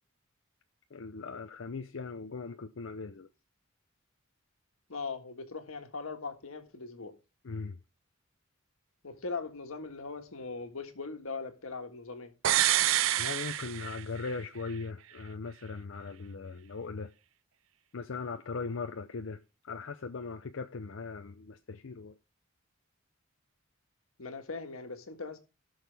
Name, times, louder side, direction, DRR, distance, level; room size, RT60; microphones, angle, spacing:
voice 1, 0.9-3.3 7.4-7.8 13.2-17.1 17.9-19.4 19.6-22.1, left 4 dB, 65° left, 0.6 m, -39 dB
voice 2, 4.9-7.2 9.0-12.3 24.2-25.4, left 4 dB, 90° left, 1.7 m, -40 dB
sound 1, 12.4-14.4 14.7-14.8, right 12 dB, 70° right, 0.5 m, -27 dB
18.0 x 6.4 x 3.4 m
head